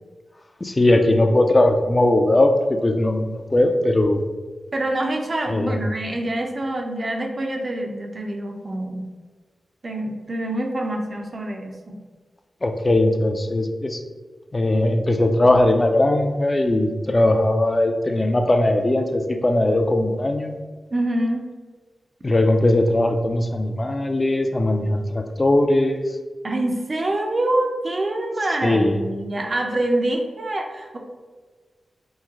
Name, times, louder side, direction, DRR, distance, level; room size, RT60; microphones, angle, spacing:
voice 1, 0.6-4.2 5.5-5.8 12.6-14.0 14.5-20.5 22.2-26.1 28.6-29.0, left 1 dB, 35° left, 6 dB, 0.4 m, -19 dB
voice 2, 4.7-9.0 9.8-12.0 20.9-21.5 26.4-31.0, right 1 dB, 50° right, 2 dB, 0.5 m, -25 dB
3.1 x 2.1 x 3.5 m, 1.4 s
cardioid pair, 45°, 0 cm